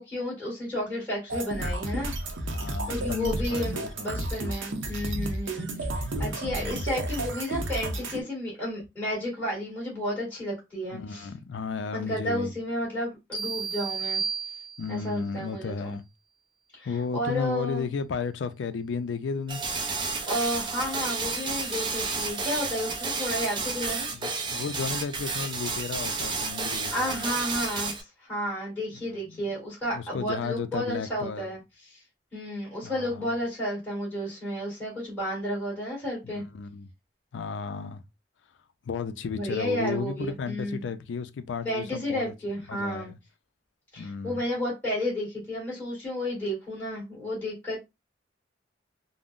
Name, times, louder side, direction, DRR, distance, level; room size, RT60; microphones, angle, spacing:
voice 1, 0.0-2.1 2.9-11.3 11.9-14.2 14.9-15.9 16.7-17.8 20.3-24.1 26.9-32.0 32.3-36.4 39.3-40.8 41.6-43.1 43.9-47.8, equal, 10° left, 1.7 m, -32 dB
sound 1, 1.3-8.2, right 1 dB, 90° right, 0.6 m, -32 dB
voice 2, 2.5-4.3 6.5-6.9 10.9-12.5 14.8-16.0 16.9-19.6 24.1-27.2 29.0-29.4 29.9-31.5 32.8-33.3 36.2-36.9 37.3-38.0 38.8-42.3 42.7-43.2 44.0-44.4, left 5 dB, 75° left, 0.4 m, -34 dB
sound 2, 13.3-15.1, right 6 dB, 30° left, 0.9 m, -32 dB
sound 3, 19.5-28.0, right 4 dB, 25° right, 0.4 m, -31 dB
3.5 x 2.0 x 2.4 m
head